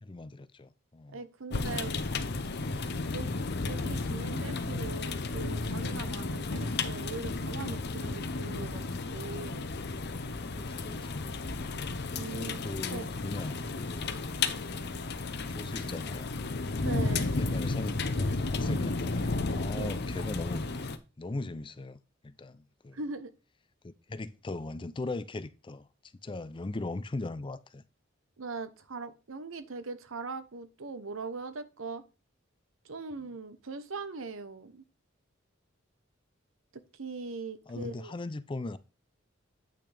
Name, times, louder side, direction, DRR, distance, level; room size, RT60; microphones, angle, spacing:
voice 1, 0.0-1.2 10.4-11.7 12.3-14.1 15.5-16.3 16.7-20.6 21.2-23.0 23.8-25.9 26.2-27.8 37.7-38.8, left 2 dB, 25° left, 0.5 m, -39 dB
voice 2, 1.1-2.0 3.1-3.3 3.6-8.8 9.1-9.7 12.1-12.6 12.9-13.1 16.8-17.3 19.7-19.9 22.9-23.3 28.4-32.0 32.8-34.8 36.9-38.1, right 4 dB, 85° right, 0.9 m, -40 dB
sound 1, 1.5-21.0, left 3 dB, 55° left, 0.7 m, -33 dB
8.6 x 6.0 x 3.4 m
head